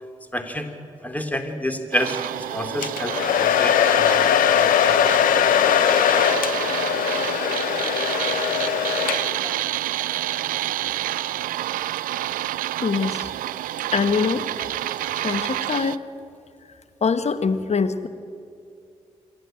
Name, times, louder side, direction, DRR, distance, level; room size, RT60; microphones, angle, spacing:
voice 1, 0.3-0.7 1.0-6.2, equal, 10° left, 7 dB, 3.0 m, -30 dB
sound 1, 1.9-16.0, right 14 dB, 85° right, 0.4 m, -29 dB
Domestic sounds home sounds, 2.8-9.5, left 9 dB, 85° left, 0.8 m, -20 dB
voice 2, 12.8-13.3 13.9-14.4 15.2-16.0 17.0-18.1, left 5 dB, 50° left, 11 dB, 1.4 m, -23 dB
26.0 x 11.5 x 9.1 m, 2.4 s
supercardioid pair, 45°, 14 cm